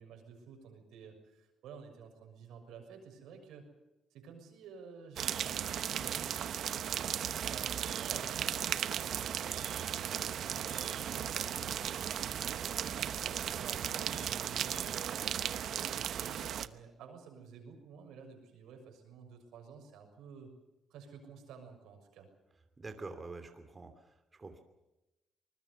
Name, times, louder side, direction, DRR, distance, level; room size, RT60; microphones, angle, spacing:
voice 1, 0.0-3.7 4.1-6.4 6.7-20.5 20.9-22.3, right 6 dB, 85° right, 4 dB, 6.5 m, -52 dB
sound 1, 5.2-16.7, right 9 dB, 65° right, 0.9 m, -36 dB
voice 2, 22.8-24.6, right 3 dB, 25° right, 6 dB, 2.8 m, -46 dB
24.5 x 20.5 x 7.0 m, 0.97 s
cardioid pair, 90°, 0 cm